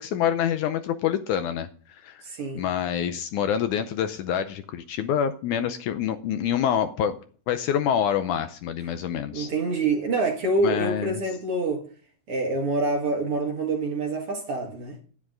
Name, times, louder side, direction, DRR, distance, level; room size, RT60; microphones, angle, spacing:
voice 1, 0.0-2.2 2.6-7.2 7.5-9.5 10.6-11.2, left 9 dB, 80° left, 1.9 m, -26 dB
voice 2, 2.2-2.6 9.3-11.8 12.3-15.0, right 2 dB, 50° right, 2.0 m, -26 dB
11.0 x 9.8 x 3.8 m
omnidirectional pair, 4.0 m